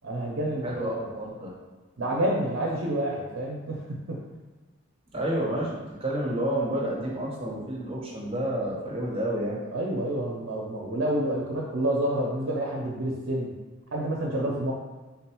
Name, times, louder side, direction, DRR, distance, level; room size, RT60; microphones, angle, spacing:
voice 1, 0.0-0.9 2.0-4.2 9.7-13.5 13.9-14.7, right 1 dB, 70° right, -2 dB, 0.5 m, -28 dB
voice 2, 0.6-1.5 5.1-9.6, right 1 dB, 30° right, -4 dB, 0.7 m, -30 dB
3.6 x 2.2 x 4.3 m, 1.3 s
head